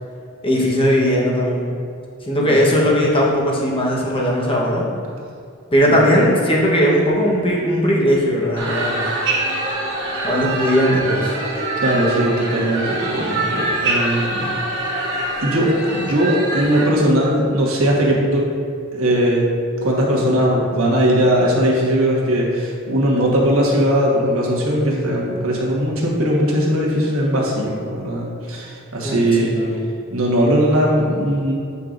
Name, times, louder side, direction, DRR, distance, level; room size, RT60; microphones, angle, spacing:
voice 1, 0.4-1.7 2.2-4.8 5.7-9.0 10.2-11.4 29.0-29.8, equal, 25° left, -3 dB, 1.1 m, -18 dB
voice 2, 2.5-2.8 5.9-6.0 11.8-14.6 15.4-18.5 18.9-19.4 19.8-29.5 30.1-31.5, equal, 75° right, -3 dB, 1.3 m, -19 dB
sound 1, 8.6-16.8, right 2 dB, 60° right, 1.4 m, -24 dB
8.3 x 5.5 x 2.6 m, 2.4 s
head